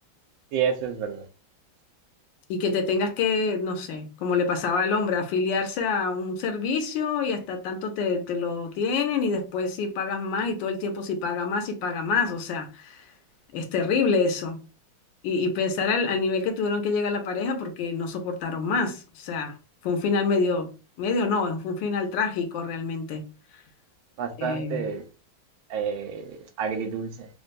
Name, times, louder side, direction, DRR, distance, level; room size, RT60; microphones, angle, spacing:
voice 1, 0.5-1.3 24.2-25.0 25.7-27.3, right 7 dB, 85° right, 1.4 m, -29 dB
voice 2, 2.5-13.0 13.5-14.6 15.2-19.6 19.8-20.7 21.0-23.2 24.4-24.8, left 4 dB, 75° left, 1.3 m, -26 dB
3.8 x 2.2 x 2.5 m
omnidirectional pair, 2.2 m